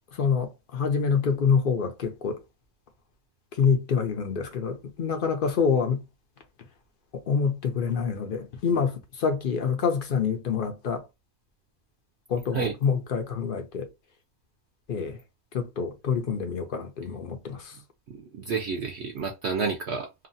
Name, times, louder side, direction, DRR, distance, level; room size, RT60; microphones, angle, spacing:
voice 1, 0.1-2.4 3.6-6.0 7.1-11.0 12.3-13.9 14.9-15.2 15.5-17.7, left 6 dB, 55° left, 0.6 m, -26 dB
voice 2, 18.1-20.3, right 5 dB, 60° right, 0.7 m, -30 dB
2.9 x 2.3 x 2.5 m
omnidirectional pair, 1.5 m